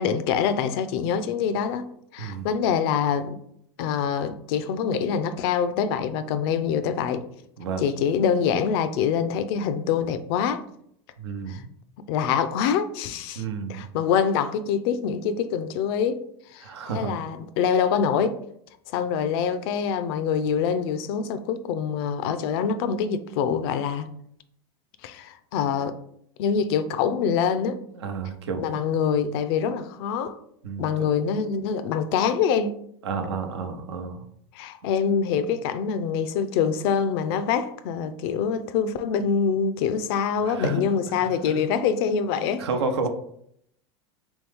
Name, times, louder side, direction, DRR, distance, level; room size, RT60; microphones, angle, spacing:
voice 1, 0.0-1.9 2.1-3.4 3.8-7.3 7.8-10.7 11.5-11.6 12.1-13.4 13.7-16.3 16.5-18.4 18.9-24.1 25.0-25.9 26.4-27.8 28.6-30.4 30.8-32.8 34.5-42.7, left 7 dB, 65° left, 0.5 m, -25 dB
voice 2, 11.2-11.6 13.4-13.8 16.6-17.1 28.0-28.9 30.6-31.0 33.0-34.2 40.4-40.8 41.2-41.6 42.6-43.1, right 4 dB, 90° right, 0.7 m, -31 dB
3.6 x 3.1 x 3.4 m
supercardioid pair, 110°, 14 cm